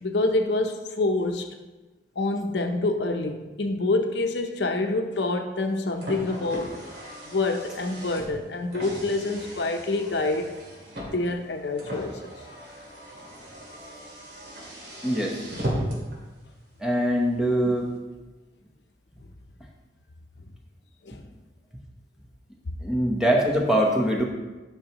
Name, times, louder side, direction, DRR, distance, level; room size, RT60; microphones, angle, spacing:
voice 1, 0.0-1.5 2.2-6.8 7.2-10.5 11.1-12.3 21.1-21.3, left 2 dB, 70° left, 5 dB, 0.7 m, -27 dB
Car, 5.5-16.2, right 1 dB, 70° right, 2.3 m, -37 dB
voice 2, 15.0-15.4 16.8-17.9 22.8-24.2, equal, 5° right, -1 dB, 0.9 m, -23 dB
11.5 x 5.8 x 3.0 m, 1.2 s
head